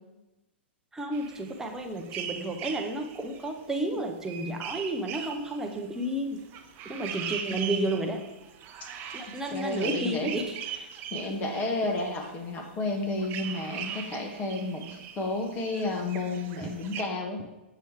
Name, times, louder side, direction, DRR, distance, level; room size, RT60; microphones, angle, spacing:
voice 1, 0.9-6.4 6.8-8.2 9.1-10.9 16.6-16.7, right 1 dB, 10° right, 2 dB, 0.8 m, -32 dB
sound 1, 1.1-12.3 12.6-12.7 13.0-17.0, right 8 dB, 35° right, 0.6 m, -40 dB
voice 2, 7.5-7.9 9.5-10.3 11.1-17.4, left 2 dB, 30° left, 2 dB, 1.2 m, -31 dB
7.0 x 3.1 x 4.7 m, 1.0 s
hypercardioid pair, 120°, 6 cm